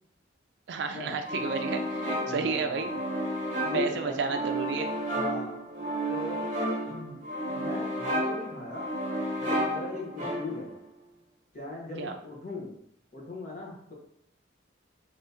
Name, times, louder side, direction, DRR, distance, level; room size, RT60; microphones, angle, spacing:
voice 1, 0.7-2.9 3.7-4.9 12.0-12.1, right 5 dB, 60° right, 6 dB, 0.4 m, -31 dB
sound 1, 1.2-10.7, right 1 dB, 45° right, 1.1 m, -32 dB
voice 2, 2.2-2.9 3.6-4.3 5.1-5.6 6.1-6.4 6.8-7.2 7.5-8.8 9.4-10.7 11.5-12.7 13.1-13.9, left 2 dB, 45° left, -3 dB, 1.0 m, -39 dB
3.5 x 2.7 x 2.7 m, 0.70 s
head